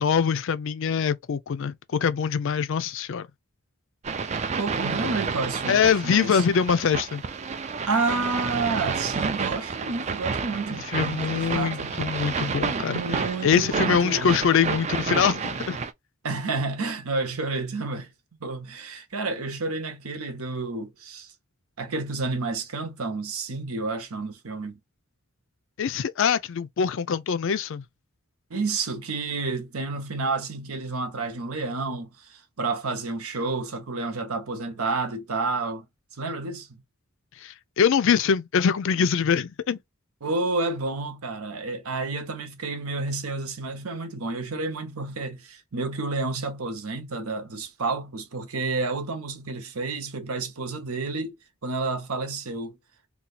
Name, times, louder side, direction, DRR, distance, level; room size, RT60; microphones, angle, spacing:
voice 1, 0.0-3.3 5.7-7.2 10.9-13.0 13.4-15.8 25.8-27.8 37.4-39.8, left 7 dB, 60° left, 0.4 m, -23 dB
sound 1, 4.0-15.9, right 5 dB, 30° right, 0.3 m, -30 dB
voice 2, 4.6-6.4 7.9-12.0 12.9-14.3 16.2-18.1 18.4-21.3 21.8-24.8 28.5-35.9 36.2-36.8 40.2-51.3 51.6-52.8, right 3 dB, 85° right, 0.9 m, -30 dB
2.8 x 2.3 x 4.0 m
head